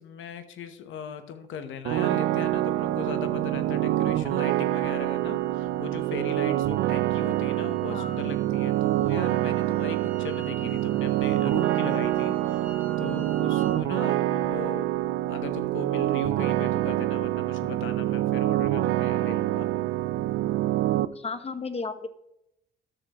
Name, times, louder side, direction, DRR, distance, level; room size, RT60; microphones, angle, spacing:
voice 1, 0.0-12.6 13.0-15.0 15.3-19.7, left 7 dB, 75° left, 9 dB, 1.0 m, -39 dB
sound 1, 1.8-21.1, right 14 dB, 90° right, 0.4 m, -26 dB
sound 2, 4.2-13.8, right 5 dB, 40° right, 1.3 m, -48 dB
voice 2, 7.9-8.2 21.1-22.1, left 4 dB, 30° left, 11 dB, 0.9 m, -34 dB
13.0 x 6.6 x 3.0 m, 0.80 s
cardioid pair, 90°, 20 cm